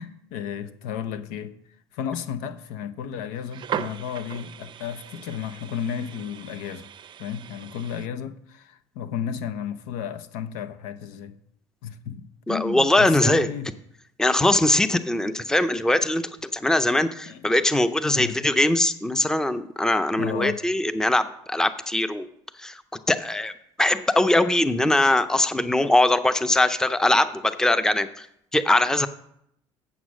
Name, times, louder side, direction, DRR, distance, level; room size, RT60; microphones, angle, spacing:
voice 1, 0.0-1.5 1.9-6.9 7.2-11.4 11.8-13.7 17.3-17.5 18.1-18.4 20.2-20.6, left 8 dB, 80° left, 0.8 m, -33 dB
sound 1, 3.4-8.1, right 9 dB, 40° right, 0.6 m, -38 dB
voice 2, 12.5-13.5 14.2-22.3 22.6-22.8 23.1-23.5 23.8-28.3 28.5-29.1, left 1 dB, 5° left, 0.6 m, -21 dB
8.2 x 7.2 x 6.2 m
supercardioid pair, 100°, 12 cm